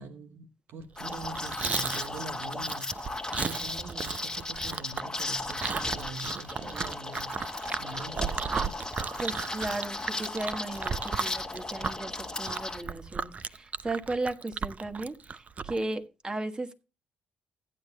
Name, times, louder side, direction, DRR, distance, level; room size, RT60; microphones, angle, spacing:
voice 1, 0.0-8.8, right 3 dB, 60° right, 0.9 m, -44 dB
Liquid, 1.0-12.8, left 2 dB, 15° left, 1.3 m, -36 dB
Chewing mastication, 1.0-15.8, right 5 dB, 35° right, 0.6 m, -35 dB
voice 2, 9.2-16.8, right 2 dB, 20° right, 1.6 m, -35 dB
16.0 x 9.9 x 2.2 m
figure-of-eight pair, 45°, 4 cm